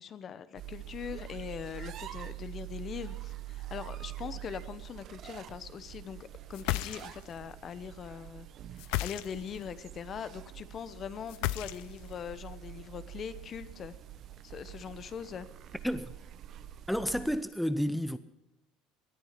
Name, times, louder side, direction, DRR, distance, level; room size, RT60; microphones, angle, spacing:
voice 1, 0.0-8.5 8.8-13.9 14.4-15.5, left 7 dB, 40° left, 0.9 m, -42 dB
sound 1, 0.6-17.4, right 13 dB, 50° right, 0.8 m, -45 dB
sound 2, 6.5-7.4 8.8-9.6 11.3-12.1, left 17 dB, 75° left, 0.5 m, -33 dB
voice 2, 15.8-16.1 16.9-18.2, equal, ahead, 0.6 m, -31 dB
18.5 x 10.5 x 5.9 m
supercardioid pair, 110°, 0 cm